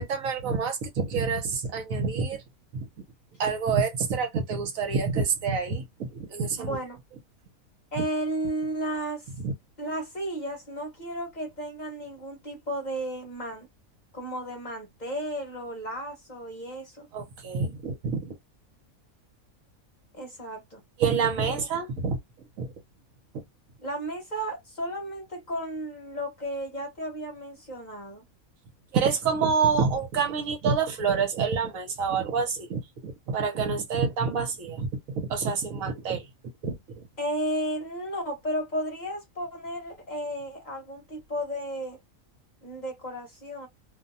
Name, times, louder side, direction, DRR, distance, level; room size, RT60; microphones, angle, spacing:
voice 1, 0.0-2.4 2.7-2.9 3.4-6.8 9.4-9.5 17.1-18.3 21.0-22.2 22.6-22.7 28.9-36.3 36.6-37.0, right 5 dB, 70° right, 1.2 m, -27 dB
voice 2, 6.5-7.0 7.9-9.3 9.8-13.7 14.1-17.1 20.1-20.8 21.5-21.6 23.8-28.2 37.2-42.0 42.6-43.7, right 1 dB, 35° left, 1.0 m, -33 dB
2.6 x 2.2 x 2.6 m
omnidirectional pair, 1.5 m